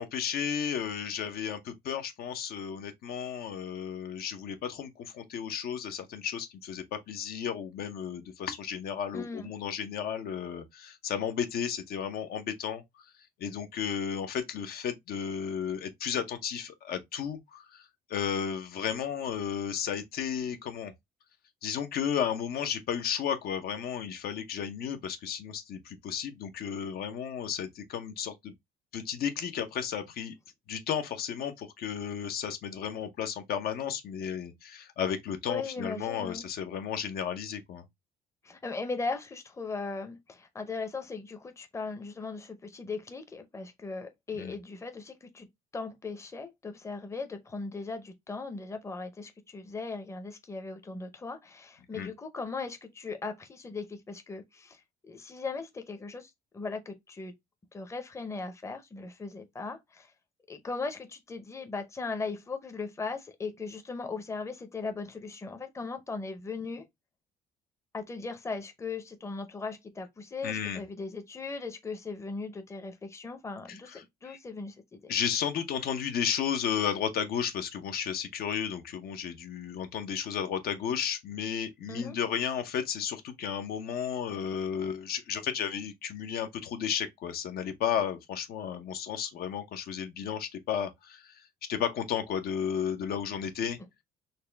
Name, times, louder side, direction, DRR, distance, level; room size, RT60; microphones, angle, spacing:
voice 1, 0.0-12.8 13.4-20.9 21.6-28.5 28.9-30.3 30.7-37.8 44.3-44.5 51.9-52.1 70.4-70.8 73.7-74.4 75.1-91.4 91.7-93.8, left 8 dB, 65° left, 0.7 m, -33 dB
voice 2, 9.1-9.5 35.5-36.4 38.4-45.5 45.7-57.3 57.7-60.1 60.5-66.8 67.9-75.1 81.9-82.2, left 4 dB, 15° left, 0.7 m, -38 dB
4.1 x 2.2 x 3.3 m
cardioid pair, 110°, 17 cm